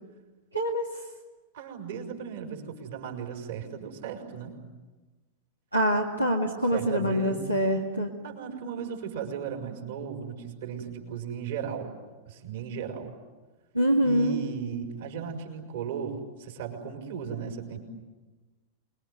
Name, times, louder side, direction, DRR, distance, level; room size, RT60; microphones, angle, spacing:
voice 1, 0.5-0.9 5.7-8.1 13.7-14.4, equal, 90° right, -1 dB, 2.1 m, -25 dB
voice 2, 1.5-4.6 6.7-7.5 8.2-11.9 12.3-13.1 14.0-17.8, right 7 dB, 60° right, 3 dB, 5.6 m, -36 dB
28.5 x 22.0 x 9.4 m, 1.2 s
figure-of-eight pair, 90°, 0 cm